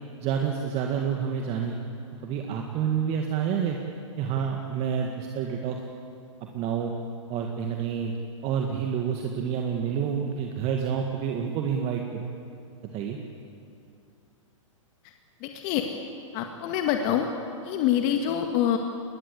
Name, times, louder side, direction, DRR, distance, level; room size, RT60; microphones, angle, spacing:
voice 1, 0.2-1.8 2.2-3.8 4.2-5.8 6.4-6.9 7.3-8.1 8.4-12.4 12.9-13.2, right 7 dB, 35° right, 2 dB, 2.0 m, -28 dB
voice 2, 15.4-15.9 16.3-17.3 17.6-18.8, left 10 dB, 40° left, 4 dB, 1.9 m, -25 dB
22.5 x 20.0 x 8.3 m, 2.6 s
hypercardioid pair, 115°, 17 cm